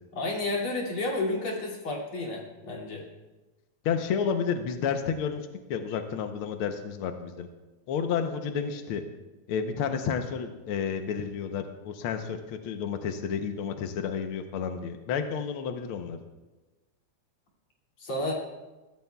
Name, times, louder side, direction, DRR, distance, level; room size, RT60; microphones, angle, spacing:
voice 1, 0.1-3.0 18.0-18.3, left 2 dB, 45° left, -2 dB, 3.2 m, -31 dB
voice 2, 3.8-5.4 5.7-7.5 7.9-9.0 9.5-16.2, left 7 dB, 80° left, 6 dB, 1.2 m, -31 dB
21.5 x 15.0 x 2.3 m, 1.1 s
omnidirectional pair, 3.5 m